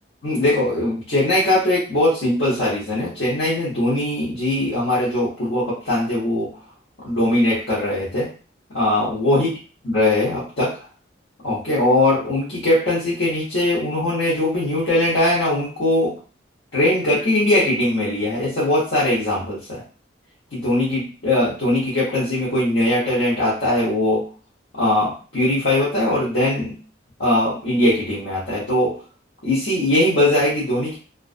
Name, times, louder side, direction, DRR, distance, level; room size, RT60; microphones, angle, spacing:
voice 1, 0.2-6.5 7.0-8.3 8.7-9.6 9.8-10.7 11.4-16.1 16.7-19.8 20.5-24.2 24.7-26.8 27.2-29.0 29.4-31.0, left 1 dB, 60° left, -9 dB, 0.9 m, -20 dB
2.3 x 2.2 x 2.4 m, 0.37 s
head